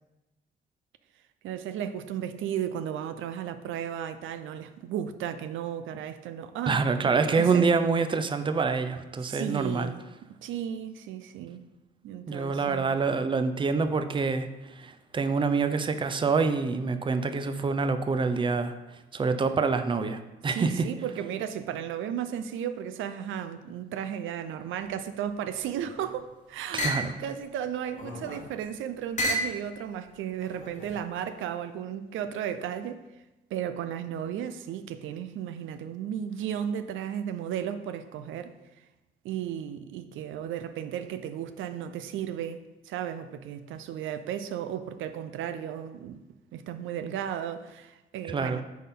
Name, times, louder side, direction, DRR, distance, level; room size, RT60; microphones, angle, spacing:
voice 1, 1.4-7.7 9.3-10.0 10.4-11.6 12.0-13.0 20.5-33.0 33.5-38.5 39.2-46.2 46.5-48.6, right 9 dB, 80° right, 10 dB, 0.5 m, -34 dB
voice 2, 6.7-9.9 12.3-14.5 14.7-18.7 19.1-20.8 26.7-27.1 48.3-48.6, right 4 dB, 25° right, 9 dB, 0.5 m, -26 dB
sound 1, 25.7-26.2 26.8-27.1 27.9-28.5 29.2-29.6 30.4-31.0, equal, 35° left, 1.2 m, -32 dB
9.4 x 4.2 x 3.7 m, 1.0 s
cardioid pair, 90°, 20 cm